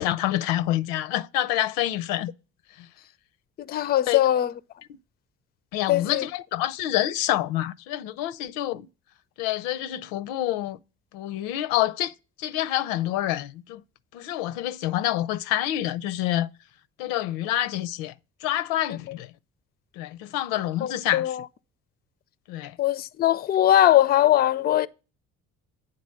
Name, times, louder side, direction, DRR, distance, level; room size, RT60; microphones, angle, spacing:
voice 1, 0.0-2.3 2.8-2.9 4.1-4.2 5.7-8.9 9.4-10.8 11.1-12.1 12.4-13.8 14.1-16.5 17.0-18.1 18.4-19.3 20.0-21.4 22.5-22.8, left 13 dB, 90° left, 0.5 m, -27 dB
voice 2, 3.6-4.5 5.9-6.3 20.8-21.4 22.8-24.9, left 12 dB, 30° left, 0.4 m, -21 dB
8.5 x 3.8 x 6.3 m
supercardioid pair, 85°, 33 cm